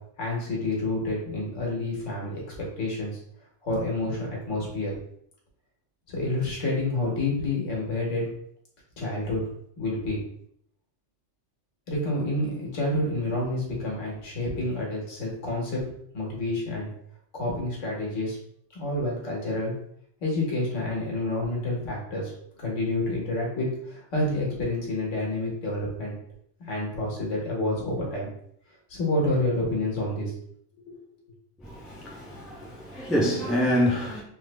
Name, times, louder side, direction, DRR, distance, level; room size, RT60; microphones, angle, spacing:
voice 1, 0.2-2.4 2.8-3.2 3.6-4.9 6.1-8.2 9.0-9.4 9.8-10.2 11.9-15.8 16.1-16.9 17.3-18.4 18.7-19.7 20.2-22.3 22.6-26.2 26.6-28.3 28.9-30.3 30.9-31.0, left 2 dB, 80° left, -3 dB, 1.5 m, -28 dB
voice 2, 31.6-34.2, equal, ahead, -3 dB, 0.4 m, -26 dB
3.6 x 2.0 x 3.2 m, 0.68 s
omnidirectional pair, 1.3 m